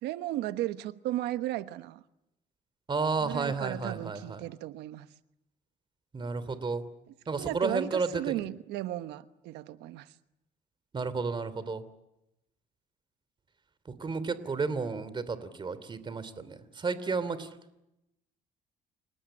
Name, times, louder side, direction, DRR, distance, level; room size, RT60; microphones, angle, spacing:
voice 1, 0.0-2.0 3.2-5.1 7.4-10.1, right 15 dB, 90° right, 1.2 m, -35 dB
voice 2, 2.9-4.4 6.1-6.9 7.3-8.3 10.9-11.8 13.8-17.6, right 4 dB, 30° right, 2.9 m, -32 dB
29.0 x 18.5 x 8.9 m
cardioid pair, 110°, 17 cm